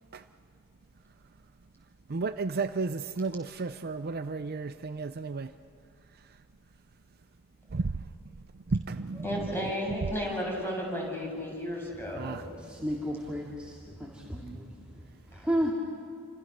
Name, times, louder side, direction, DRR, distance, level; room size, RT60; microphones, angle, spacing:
voice 1, 2.1-5.5 7.7-8.0 8.7-9.5 12.2-12.4, right 3 dB, 45° right, 0.6 m, -32 dB
voice 2, 9.2-12.4, equal, 10° left, 7.0 m, -33 dB
voice 3, 11.9-15.7, equal, 5° right, 2.5 m, -34 dB
28.5 x 26.5 x 6.8 m
head